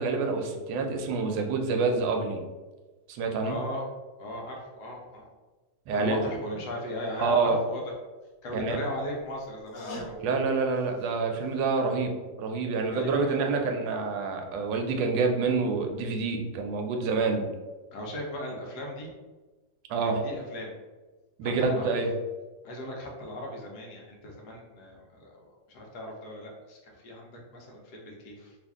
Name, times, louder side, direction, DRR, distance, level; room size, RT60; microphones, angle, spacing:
voice 1, 0.0-2.4 3.1-3.6 5.9-6.3 7.2-7.6 8.5-8.8 10.1-12.1 12.4-17.5 19.9-20.2 21.4-22.1, right 4 dB, 85° right, 4 dB, 1.3 m, -27 dB
voice 2, 3.4-3.9 4.2-5.3 5.9-7.8 8.4-10.2 12.9-13.7 17.9-19.1 20.0-20.7 21.4-22.1 22.6-28.6, left 1 dB, 70° left, -1 dB, 1.2 m, -37 dB
sound 1, 6.1-6.2 6.5-6.6 8.5-11.7 12.0-12.1, left 2 dB, 90° left, 1.4 m, -46 dB
3.1 x 2.5 x 3.5 m, 1.2 s
omnidirectional pair, 1.9 m